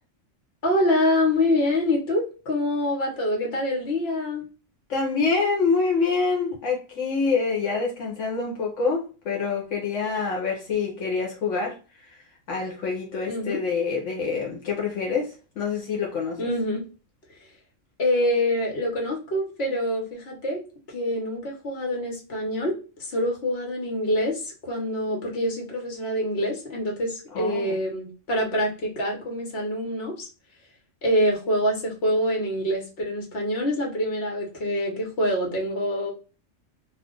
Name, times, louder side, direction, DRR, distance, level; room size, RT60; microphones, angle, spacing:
voice 1, 0.6-4.4 13.3-13.6 16.4-16.8 18.0-20.6 20.9-22.7 23.0-30.3 31.0-36.1, left 1 dB, 55° left, 1.2 m, -25 dB
voice 2, 4.9-11.8 12.5-16.5 27.3-27.8, left 4 dB, 80° left, 1.1 m, -26 dB
2.4 x 2.4 x 3.7 m
omnidirectional pair, 1.3 m